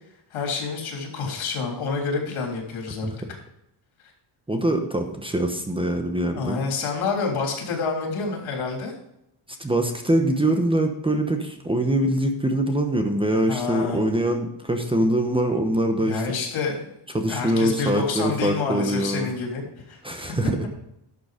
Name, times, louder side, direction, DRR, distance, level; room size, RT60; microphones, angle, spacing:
voice 1, 0.3-3.4 6.3-8.9 13.5-14.0 16.0-16.9 17.3-20.0, left 4 dB, 80° left, 1 dB, 3.6 m, -28 dB
voice 2, 4.5-6.6 9.6-16.2 17.1-19.3 20.0-20.6, right 1 dB, 10° right, 5 dB, 1.0 m, -23 dB
11.5 x 6.9 x 5.0 m, 0.81 s
cardioid pair, 160°, 49 cm